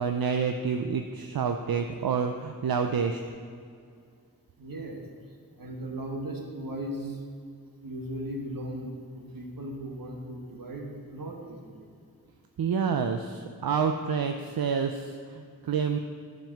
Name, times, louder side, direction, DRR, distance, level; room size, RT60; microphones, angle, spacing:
voice 1, 0.0-3.2 12.6-16.0, right 6 dB, 90° right, 6 dB, 0.5 m, -28 dB
voice 2, 4.6-5.0 5.6-7.2 7.8-8.9 9.1-11.8, right 1 dB, 70° right, 1 dB, 1.5 m, -37 dB
10.5 x 5.3 x 7.2 m, 2.2 s
wide cardioid pair, 85°, 35 cm